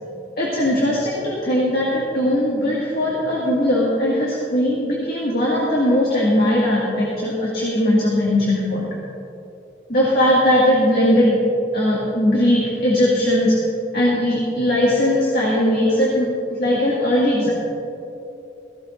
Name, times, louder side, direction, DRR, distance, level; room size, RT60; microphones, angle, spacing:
voice 1, 0.4-8.9 9.9-11.4 11.7-13.6 13.9-17.5, left 1 dB, 55° left, -6 dB, 2.0 m, -19 dB
16.0 x 15.0 x 2.6 m, 2.8 s
head